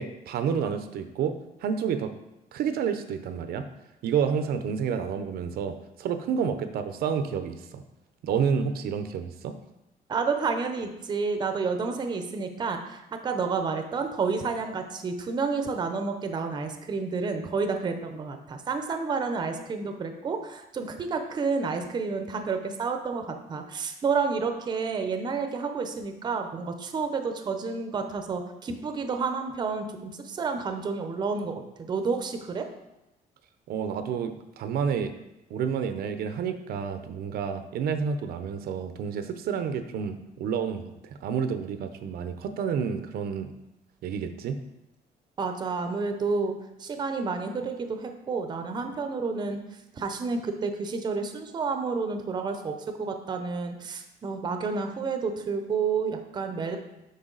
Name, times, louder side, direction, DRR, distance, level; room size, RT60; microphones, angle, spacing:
voice 1, 0.0-2.1 2.5-3.6 4.0-7.8 8.2-9.5 33.7-35.1 35.5-43.5 44.0-44.6, right 7 dB, 70° right, 9 dB, 0.6 m, -29 dB
voice 2, 10.1-32.6 45.4-46.5 46.8-49.6 50.0-56.8, right 4 dB, 25° right, 6 dB, 0.6 m, -30 dB
8.1 x 5.4 x 3.9 m, 0.93 s
cardioid pair, 170°, 17 cm